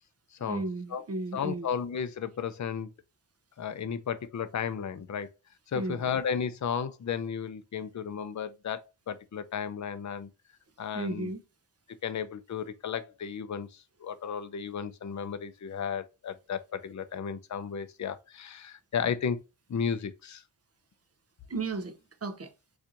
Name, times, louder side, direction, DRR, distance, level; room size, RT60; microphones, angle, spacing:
voice 1, 0.5-1.7 5.7-6.1 10.9-11.4 21.5-22.5, right 3 dB, 35° right, 0.6 m, -34 dB
voice 2, 1.3-2.9 3.6-5.3 5.7-8.8 9.1-10.3 10.8-11.3 12.0-13.7 14.0-19.4 19.7-20.4, left 7 dB, 40° left, 0.5 m, -33 dB
4.4 x 2.5 x 2.6 m
wide cardioid pair, 70°, 45 cm